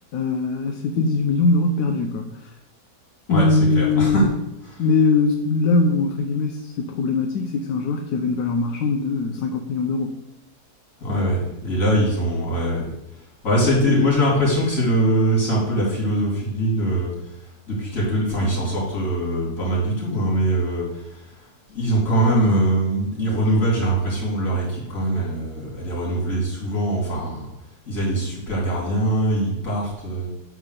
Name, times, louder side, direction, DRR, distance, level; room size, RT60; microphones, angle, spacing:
voice 1, 0.1-2.5 3.3-4.2 4.8-10.2 13.9-14.1, left 3 dB, 80° left, 3 dB, 1.2 m, -21 dB
voice 2, 3.3-4.3 4.6-5.0 11.0-12.9 13.4-17.1 17.7-21.3 21.7-27.5 27.9-30.3, right 1 dB, 50° left, -5 dB, 3.6 m, -22 dB
9.1 x 3.7 x 6.6 m, 0.86 s
omnidirectional pair, 1.8 m